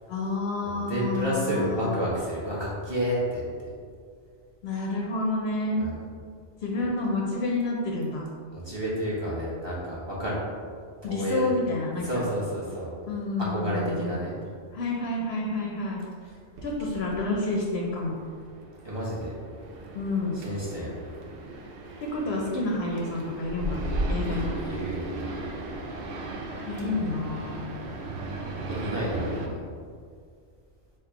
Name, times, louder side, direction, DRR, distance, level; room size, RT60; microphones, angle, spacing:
voice 1, 0.1-2.0 4.6-5.8 6.6-8.3 11.0-12.2 13.1-14.2 14.7-16.0 16.6-18.2 19.9-20.4 22.0-23.8 24.1-24.5 26.6-27.5, left 2 dB, 65° left, -2 dB, 0.8 m, -29 dB
voice 2, 0.6-3.4 5.7-6.0 8.5-10.4 11.0-11.5 12.0-12.9 13.5-14.3 18.8-19.3 20.3-20.9 24.3-25.4 28.7-29.6, equal, 25° right, -7 dB, 1.0 m, -30 dB
sound 1, 16.5-29.5, right 1 dB, 60° right, 0.7 m, -36 dB
3.6 x 2.7 x 4.7 m, 2.1 s
omnidirectional pair, 1.3 m